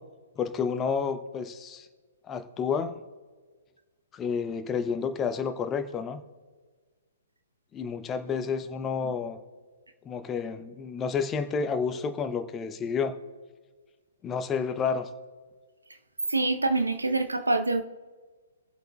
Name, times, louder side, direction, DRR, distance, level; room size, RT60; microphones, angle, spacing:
voice 1, 0.4-1.9 2.3-3.0 4.1-6.2 7.7-9.4 10.1-13.1 14.2-15.1, left 6 dB, 20° left, 0.8 m, -30 dB
voice 2, 16.3-17.8, right 2 dB, 85° right, 0.9 m, -25 dB
23.0 x 7.7 x 2.4 m
figure-of-eight pair, 125°, 0 cm